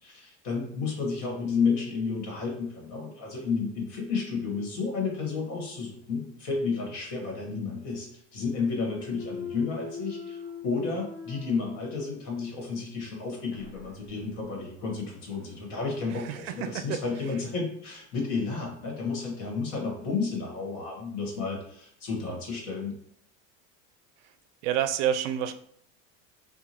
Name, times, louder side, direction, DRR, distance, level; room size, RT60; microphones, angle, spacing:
voice 1, 0.0-23.0, left 4 dB, 50° left, 0 dB, 1.4 m, -32 dB
Thump thud, 8.3-12.4 12.8-17.5, left 5 dB, 10° right, 1.4 m, -45 dB
voice 2, 16.1-17.0 24.6-25.5, right 10 dB, 80° right, 10 dB, 0.5 m, -29 dB
4.7 x 2.2 x 2.9 m, 0.67 s
supercardioid pair, 150°, 35 cm